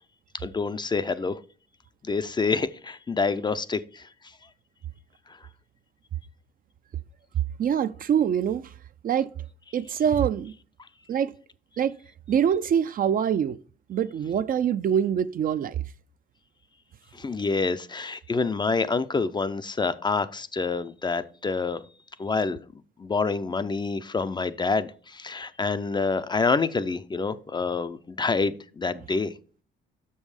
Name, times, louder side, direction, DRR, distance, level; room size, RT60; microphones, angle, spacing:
voice 1, 0.4-1.4 2.0-4.1 17.1-21.8 22.2-22.6 23.0-29.3, left 4 dB, 20° left, 0.4 m, -27 dB
voice 2, 7.6-8.6 9.0-9.3 9.7-10.5 11.1-11.3 11.8-12.0 12.3-13.6 13.9-15.8, right 8 dB, 45° right, 0.4 m, -24 dB
6.3 x 5.4 x 4.8 m
cardioid pair, 90°, 20 cm